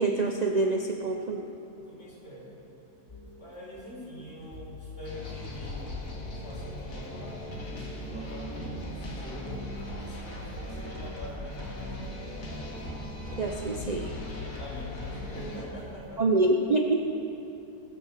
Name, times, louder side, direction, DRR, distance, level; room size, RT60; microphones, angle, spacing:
voice 1, 0.0-1.5 13.4-14.1 16.2-17.0, right 2 dB, 70° right, 2 dB, 0.4 m, -26 dB
voice 2, 1.8-2.5 3.4-5.9 6.4-11.8 14.6-16.2, equal, 40° left, -6 dB, 4.0 m, -44 dB
sound 1, 3.1-16.3, left 3 dB, 25° left, 1.6 m, -46 dB
sound 2, 5.0-15.6, left 1 dB, 55° left, 2.2 m, -39 dB
19.0 x 6.6 x 7.5 m, 2.9 s
omnidirectional pair, 1.7 m